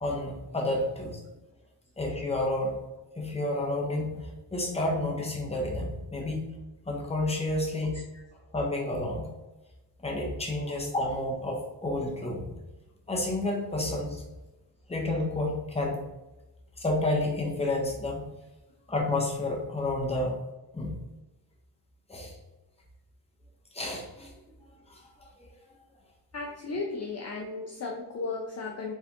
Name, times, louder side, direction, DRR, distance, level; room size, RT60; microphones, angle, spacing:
voice 1, 0.0-1.2 2.0-2.8 3.2-6.5 6.9-8.0 8.5-9.3 10.0-12.5 13.1-14.2 14.9-16.1 16.8-18.2 18.9-20.4 20.7-21.0 22.1-22.4 23.7-24.4 24.9-25.5, left 2 dB, 15° left, -1 dB, 1.0 m, -30 dB
voice 2, 26.3-28.9, left 3 dB, 35° left, -1 dB, 0.5 m, -35 dB
4.6 x 3.4 x 2.9 m, 1.0 s
wide cardioid pair, 140°, 44 cm